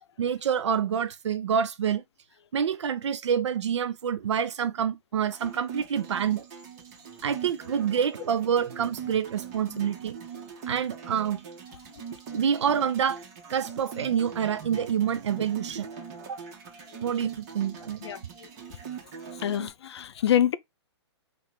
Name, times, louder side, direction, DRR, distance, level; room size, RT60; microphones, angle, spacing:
voice 1, 0.2-2.0 2.5-6.4 7.2-10.2 10.7-11.4 12.3-13.2 13.5-15.9 16.3-16.4 17.0-18.0, right 8 dB, 80° right, 0.4 m, -27 dB
sound 1, 5.2-19.7, right 6 dB, 40° right, 1.4 m, -42 dB
voice 2, 19.4-20.6, left 10 dB, 65° left, 0.5 m, -25 dB
3.6 x 2.5 x 4.5 m
hypercardioid pair, 130°, 15 cm